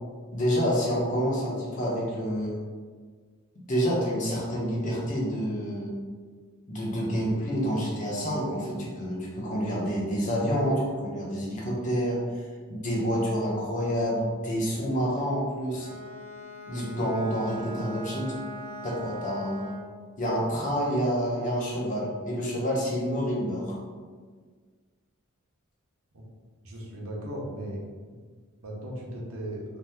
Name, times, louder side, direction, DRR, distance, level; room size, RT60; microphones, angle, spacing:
voice 1, 0.3-2.6 3.7-6.0 6.7-12.4 12.7-15.9 16.7-18.3 18.8-19.7 20.2-23.8, equal, 35° left, -4 dB, 0.8 m, -28 dB
Bowed string instrument, 15.7-20.0, equal, 75° left, 1.0 m, -41 dB
voice 2, 26.6-28.2 28.6-29.6, right 1 dB, 85° right, -3 dB, 0.7 m, -37 dB
2.8 x 2.2 x 3.4 m, 1.5 s
head